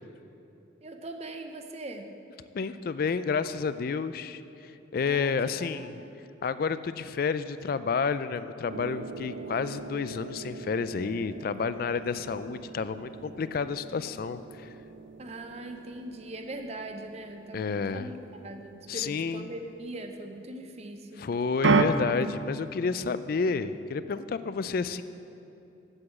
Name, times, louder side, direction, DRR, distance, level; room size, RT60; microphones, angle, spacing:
voice 1, 0.8-2.1 5.0-6.1 15.2-21.3, right 1 dB, 35° right, 5 dB, 0.7 m, -41 dB
voice 2, 2.5-6.0 6.4-14.7 17.5-18.1 18.9-19.5 21.2-25.0, left 5 dB, 50° left, 13 dB, 0.3 m, -30 dB
sound 1, 8.7-20.2 21.6-21.8, right 4 dB, 80° right, 0.5 m, -35 dB
8.3 x 7.8 x 7.2 m, 2.9 s
head